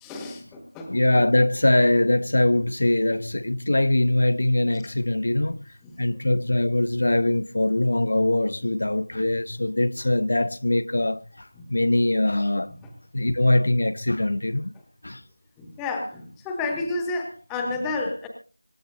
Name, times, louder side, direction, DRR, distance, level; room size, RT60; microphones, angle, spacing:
voice 1, 0.0-1.0 11.6-11.7 15.6-18.3, left 3 dB, 5° left, 0.8 m, -30 dB
voice 2, 0.9-12.7 13.1-14.7 15.0-15.2, left 1 dB, 35° left, 0.6 m, -22 dB
25.5 x 12.5 x 2.6 m
figure-of-eight pair, 175°, 0 cm